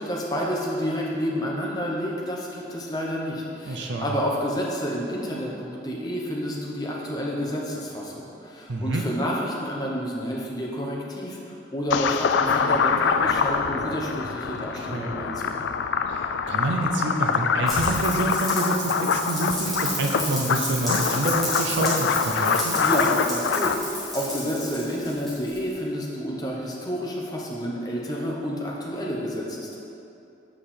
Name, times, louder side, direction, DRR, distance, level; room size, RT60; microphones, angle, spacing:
voice 1, 0.0-15.6 22.8-29.8, equal, 20° left, -4 dB, 0.9 m, -29 dB
voice 2, 3.6-4.2 8.7-9.1 14.7-15.2 16.1-22.8, right 2 dB, 75° right, 1 dB, 0.6 m, -27 dB
sound 1, 11.9-23.7, left 6 dB, 70° left, 0.3 m, -25 dB
Rain, 17.7-25.7, left 1 dB, ahead, 1.7 m, -32 dB
7.5 x 4.9 x 4.3 m, 2.7 s
head